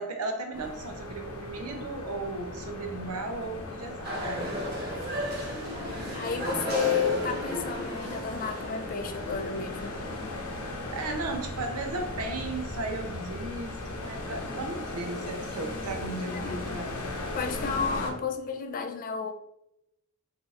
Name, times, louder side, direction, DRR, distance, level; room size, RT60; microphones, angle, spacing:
voice 1, 0.0-4.6 10.8-17.1, right 2 dB, 85° right, 4 dB, 0.6 m, -36 dB
sound 1, 0.5-18.1, left 2 dB, 90° left, 0.7 m, -37 dB
sound 2, 4.0-9.9, equal, 45° right, 0.9 m, -35 dB
voice 2, 5.8-9.9 16.3-16.8 17.3-19.3, left 6 dB, 40° left, 7 dB, 0.3 m, -32 dB
2.7 x 2.4 x 3.9 m, 0.83 s
head